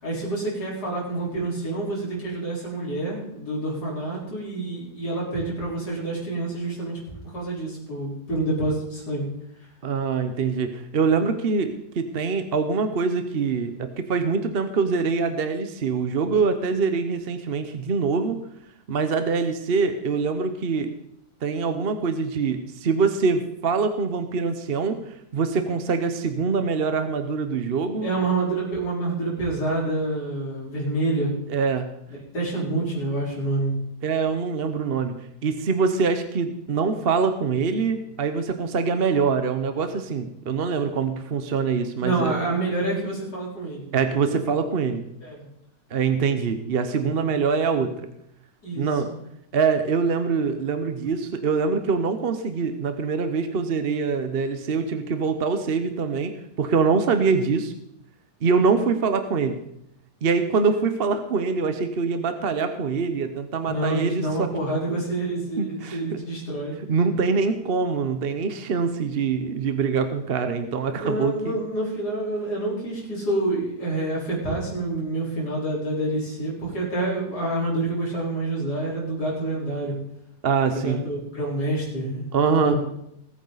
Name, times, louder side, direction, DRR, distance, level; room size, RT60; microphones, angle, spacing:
voice 1, 0.0-9.3 28.0-31.3 32.3-33.7 42.0-43.9 45.2-45.4 48.6-48.9 63.6-66.8 70.9-80.0 80.7-82.8, right 2 dB, 65° left, -5 dB, 4.8 m, -27 dB
voice 2, 9.8-18.4 18.9-20.9 21.4-28.1 31.5-31.9 34.0-42.3 43.9-45.1 45.9-48.1 48.7-49.1 49.5-56.3 56.6-57.7 58.4-59.6 60.2-64.5 64.9-65.0 65.6-66.2 66.9-71.6 80.4-81.0 82.3-82.8, right 5 dB, 45° right, 8 dB, 0.9 m, -24 dB
20.5 x 9.0 x 4.0 m, 0.77 s
omnidirectional pair, 1.8 m